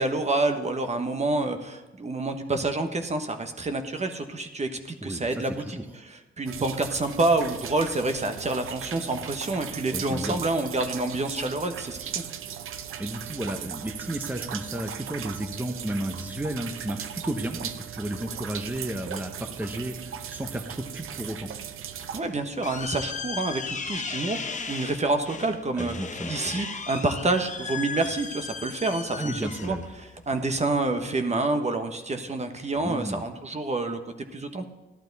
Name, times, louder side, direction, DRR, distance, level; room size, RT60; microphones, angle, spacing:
voice 1, 0.0-12.2 22.1-25.9 26.3-29.8 30.3-34.0 34.3-34.7, right 2 dB, 35° right, 7 dB, 1.1 m, -28 dB
voice 2, 5.0-5.8 9.9-10.7 13.0-21.5 25.8-26.6 29.2-29.9 32.8-33.2, right 1 dB, 10° right, 5 dB, 0.9 m, -33 dB
sound 1, 6.5-22.2, right 9 dB, 80° right, 0.7 m, -38 dB
sound 2, 22.0-31.1, left 5 dB, 35° left, 0.9 m, -36 dB
12.0 x 11.5 x 4.0 m, 1.1 s
cardioid pair, 90°, 21 cm